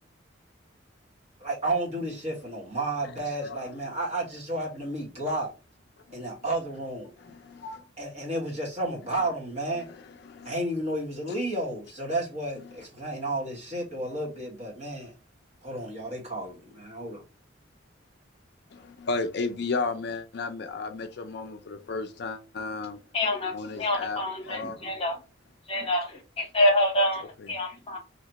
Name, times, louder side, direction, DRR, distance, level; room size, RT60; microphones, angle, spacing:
voice 1, 1.4-5.5 6.1-7.1 8.0-9.9 10.4-15.1 15.6-17.2, right 1 dB, 35° right, 1.5 m, -32 dB
voice 2, 7.2-7.8 10.3-10.5 18.7-23.0 23.5-24.2 24.5-24.8, left 3 dB, 55° left, 0.4 m, -33 dB
voice 3, 23.1-25.2 25.7-28.0, left 1 dB, 30° left, 1.0 m, -27 dB
3.1 x 2.8 x 2.9 m
head